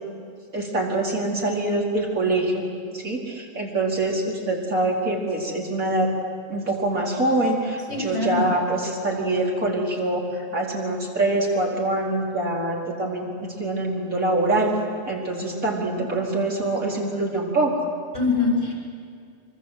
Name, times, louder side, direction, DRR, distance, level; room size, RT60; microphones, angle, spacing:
voice 1, 0.5-2.6 2.9-6.1 6.5-14.7 15.1-17.7, right 2 dB, 85° right, -2 dB, 4.9 m, -24 dB
voice 2, 7.9-8.4 18.1-18.7, left 3 dB, 55° left, -1 dB, 7.4 m, -23 dB
25.5 x 24.5 x 8.1 m, 2.3 s
omnidirectional pair, 1.4 m